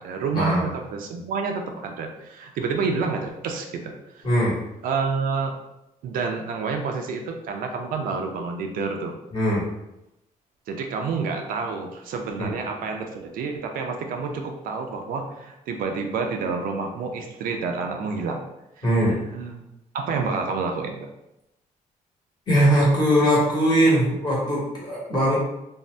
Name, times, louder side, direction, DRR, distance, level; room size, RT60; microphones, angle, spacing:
voice 1, 0.0-4.2 4.8-5.6 6.0-9.1 10.7-18.4 19.0-19.6 19.9-21.1, right 4 dB, 85° right, 3 dB, 0.4 m, -29 dB
voice 2, 4.2-4.6 9.3-9.6 12.4-12.5 18.8-19.1 22.5-25.4, equal, 30° left, -6 dB, 1.1 m, -20 dB
2.6 x 2.1 x 3.2 m, 0.89 s
cardioid pair, 135°, 14 cm